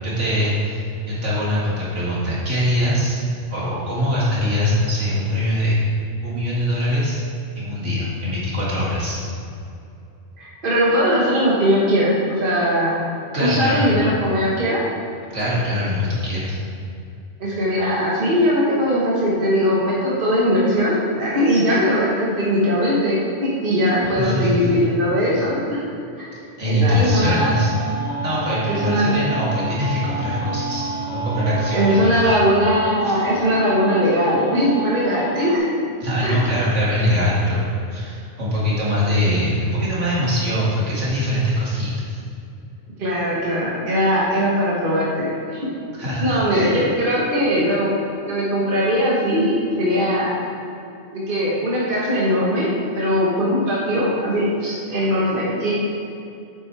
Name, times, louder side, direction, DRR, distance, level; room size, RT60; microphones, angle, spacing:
voice 1, 0.0-3.2 3.5-5.9 6.2-7.2 7.5-9.2 13.3-13.9 15.3-16.6 24.0-24.7 26.6-27.7 28.2-32.4 33.0-33.2 36.0-42.2 46.0-46.7, equal, 80° right, -8 dB, 2.6 m, -22 dB
voice 2, 10.4-12.9 13.4-14.8 17.4-25.6 26.2-26.3 26.6-27.5 28.7-29.1 31.7-35.6 36.2-36.5 43.0-45.6 46.2-47.9 48.3-50.4 51.1-52.7 52.9-55.7, equal, 45° right, -6 dB, 1.6 m, -20 dB
sound 1, 27.1-35.6, right 2 dB, 70° left, 1.5 m, -30 dB
8.4 x 8.0 x 3.4 m, 2.6 s
omnidirectional pair, 1.2 m